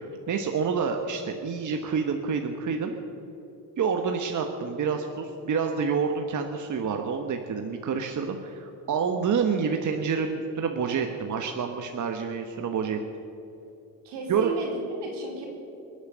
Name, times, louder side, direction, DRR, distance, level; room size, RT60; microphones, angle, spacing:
voice 1, 0.0-3.0 3.8-13.0 14.3-14.5, right 6 dB, 45° right, 4 dB, 1.2 m, -28 dB
voice 2, 14.0-15.5, right 3 dB, 80° right, -1 dB, 4.1 m, -34 dB
22.5 x 8.1 x 6.9 m, 2.9 s
supercardioid pair, 80°, 40 cm